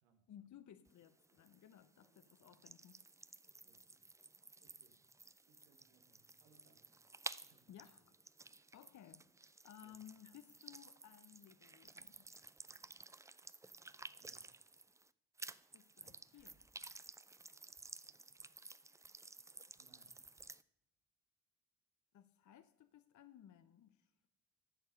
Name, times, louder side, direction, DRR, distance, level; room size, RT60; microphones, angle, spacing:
voice 1, 0.3-3.0 7.7-8.1 8.5-12.3 15.7-16.6 22.1-24.1, left 10 dB, 50° left, 11 dB, 0.7 m, -60 dB
sound 1, 0.9-15.1 15.4-20.6, right 3 dB, 10° right, 0.3 m, -55 dB
voice 2, 3.5-3.8 4.6-5.2 5.5-6.8 7.4-7.7 9.8-10.0 14.2-14.5 19.8-20.2, right 4 dB, 85° right, 5 dB, 1.4 m, -72 dB
11.0 x 6.4 x 6.5 m, 0.85 s
hypercardioid pair, 45°, 39 cm